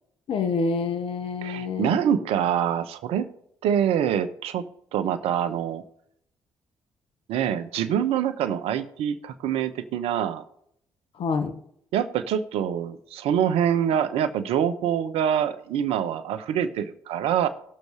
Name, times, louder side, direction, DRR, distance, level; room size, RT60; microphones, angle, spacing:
voice 1, 0.3-2.0 11.2-11.6, left 4 dB, 65° left, 7 dB, 1.3 m, -27 dB
voice 2, 1.4-3.3 3.6-4.6 4.9-5.8 7.3-10.4 11.9-17.5, right 9 dB, 75° right, 11 dB, 0.9 m, -25 dB
19.0 x 6.6 x 3.2 m, 0.72 s
hypercardioid pair, 50°, 10 cm